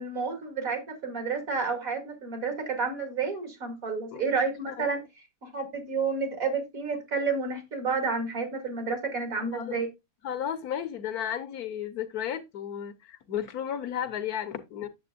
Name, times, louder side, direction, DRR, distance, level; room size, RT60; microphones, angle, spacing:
voice 1, 0.0-5.0 5.4-9.9, right 4 dB, 65° right, 2.9 m, -30 dB
voice 2, 4.1-4.9 9.5-9.8 10.2-14.9, left 9 dB, 80° left, 1.4 m, -34 dB
8.5 x 7.4 x 2.5 m
omnidirectional pair, 1.6 m